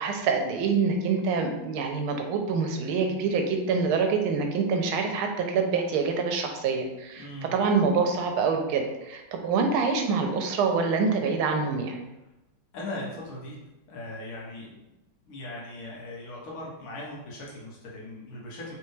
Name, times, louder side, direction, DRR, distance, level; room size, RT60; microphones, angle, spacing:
voice 1, 0.0-7.3 7.5-12.0, right 5 dB, 85° right, 4 dB, 1.5 m, -26 dB
voice 2, 7.2-7.6 12.7-13.6 13.9-14.8 15.3-18.7, left 1 dB, 90° left, -4 dB, 2.0 m, -39 dB
4.2 x 3.4 x 3.1 m, 0.99 s
omnidirectional pair, 2.3 m